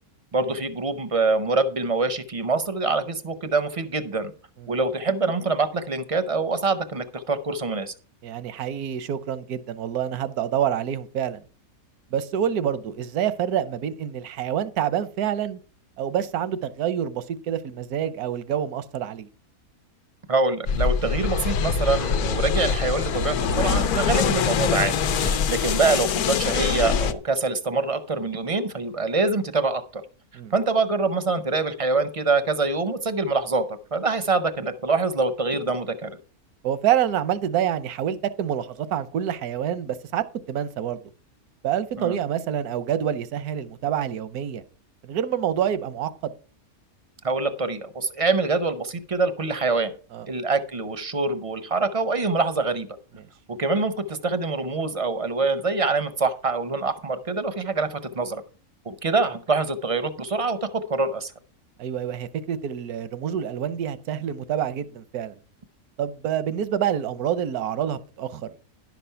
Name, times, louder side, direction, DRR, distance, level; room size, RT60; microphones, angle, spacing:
voice 1, 0.3-4.3 4.7-7.9 20.3-30.0 30.5-36.1 42.0-42.2 47.2-49.9 50.3-52.9 53.6-58.4 58.9-61.3, right 3 dB, 40° right, 0.5 m, -25 dB
voice 2, 8.2-11.4 12.1-15.6 16.0-19.3 25.2-25.4 30.3-30.5 36.6-41.0 41.6-44.6 45.0-46.3 50.1-50.3 61.8-65.4 66.0-68.5, right 9 dB, 85° right, 1.3 m, -27 dB
sound 1, 20.7-27.1, left 6 dB, 90° left, 1.3 m, -24 dB
11.0 x 6.0 x 5.6 m
omnidirectional pair, 1.5 m